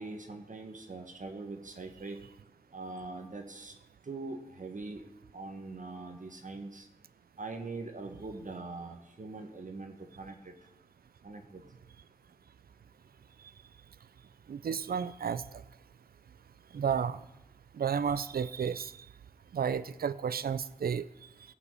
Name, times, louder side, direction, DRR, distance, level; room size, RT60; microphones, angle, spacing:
voice 1, 0.0-2.2 2.7-3.7 4.0-5.0 5.3-6.9 7.4-10.5 11.2-11.6, right 3 dB, 60° right, 4 dB, 1.5 m, -42 dB
voice 2, 14.5-15.4 16.7-17.2 17.8-18.9 19.5-21.0, right 7 dB, 90° right, 16 dB, 0.5 m, -32 dB
16.5 x 5.7 x 8.4 m, 0.95 s
cardioid pair, 55°, 15 cm